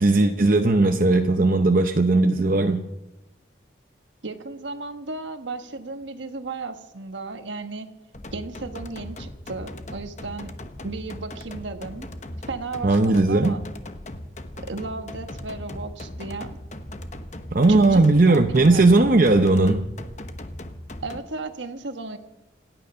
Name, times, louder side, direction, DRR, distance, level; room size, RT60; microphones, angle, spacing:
voice 1, 0.0-2.8 12.8-13.6 17.5-19.9, right 2 dB, 50° right, 5 dB, 0.7 m, -18 dB
voice 2, 4.2-7.9 8.3-10.5 10.8-12.1 12.5-13.6 14.6-16.6 17.7-19.0 21.0-22.2, right 3 dB, 90° right, 7 dB, 1.3 m, -34 dB
sound 1, 8.1-21.2, left 1 dB, 40° left, 1.0 m, -38 dB
27.0 x 9.2 x 5.6 m, 0.99 s
head